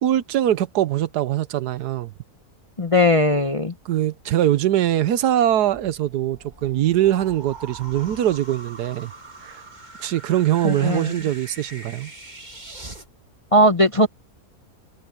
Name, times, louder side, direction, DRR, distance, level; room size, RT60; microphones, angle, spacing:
voice 1, 0.0-2.1 3.9-9.1 9.4-9.6 10.0-12.1, right 12 dB, 85° right, 1.4 m, -22 dB
voice 2, 2.8-3.7 10.6-11.0 13.5-14.1, left 1 dB, 30° left, 0.7 m, -18 dB
sound 1, 5.6-13.1, right 2 dB, 25° right, 3.0 m, -42 dB
omnidirectional pair, 1.7 m